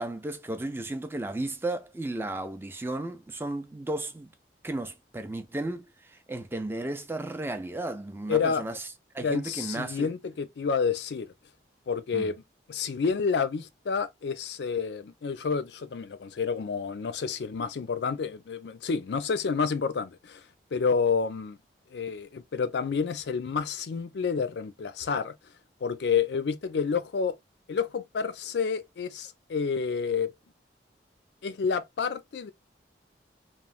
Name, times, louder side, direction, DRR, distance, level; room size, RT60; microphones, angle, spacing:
voice 1, 0.0-4.3 4.6-8.9 9.1-10.1 12.1-12.3, right 2 dB, 10° right, 0.3 m, -34 dB
voice 2, 8.3-8.6 9.2-11.3 11.9-12.4 12.7-20.4 20.7-21.6 21.9-25.3 25.8-27.3 27.7-30.3 31.4-32.5, left 5 dB, 70° left, 0.4 m, -29 dB
3.0 x 2.0 x 2.4 m
head